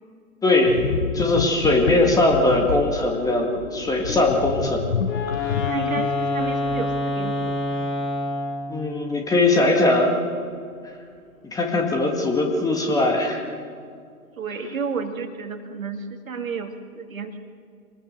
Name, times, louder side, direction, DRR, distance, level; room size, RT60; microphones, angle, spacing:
voice 1, 0.4-0.8 1.1-4.8 5.3-5.6 8.7-10.1 11.5-13.4, left 2 dB, 10° left, 2 dB, 1.9 m, -20 dB
sound 1, 0.6-8.1 8.3-8.5, left 6 dB, 65° left, 1.2 m, -30 dB
Wind instrument woodwind instrument, 5.0-8.7, left 2 dB, 30° left, 6.4 m, -26 dB
voice 2, 5.6-7.8 14.4-17.4, right 5 dB, 65° right, 6 dB, 2.4 m, -32 dB
25.5 x 20.0 x 6.6 m, 2.2 s
figure-of-eight pair, 125°, 43 cm